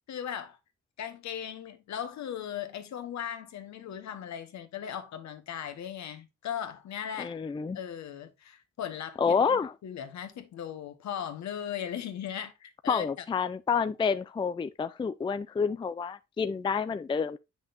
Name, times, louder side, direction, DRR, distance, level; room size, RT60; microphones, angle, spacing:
voice 1, 0.1-0.6 1.0-7.4 7.7-13.2, left 9 dB, 65° left, 1.3 m, -38 dB
voice 2, 7.2-7.8 9.2-9.7 12.9-17.4, left 6 dB, 15° left, 0.4 m, -29 dB
7.7 x 6.1 x 2.6 m
cardioid pair, 90°, 30 cm